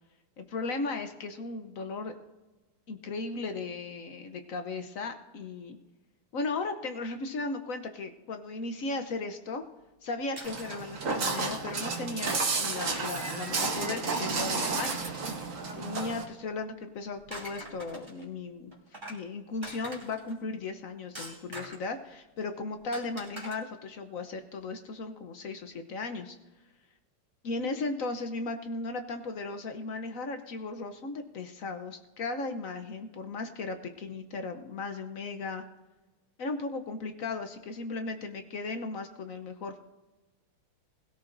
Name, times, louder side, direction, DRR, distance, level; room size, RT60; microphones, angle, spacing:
voice 1, 0.4-2.1 2.9-5.8 6.3-9.6 10.0-15.2 15.7-18.7 19.1-26.4 27.4-35.6 36.4-39.8, left 3 dB, 60° left, 7 dB, 0.9 m, -36 dB
sound 1, 10.4-10.8 11.4-11.6 11.9-12.2 12.8-13.1 13.4-13.8 14.3-15.4 15.9-16.6 17.1-18.2 18.7-19.2 19.6-20.3 21.2-21.9 22.9-23.5, right 1 dB, 10° right, 2.8 m, -43 dB
Walk footsteps, 10.4-16.2, right 4 dB, 45° right, 1.3 m, -32 dB
21.0 x 13.0 x 2.6 m, 1.1 s
omnidirectional pair, 2.4 m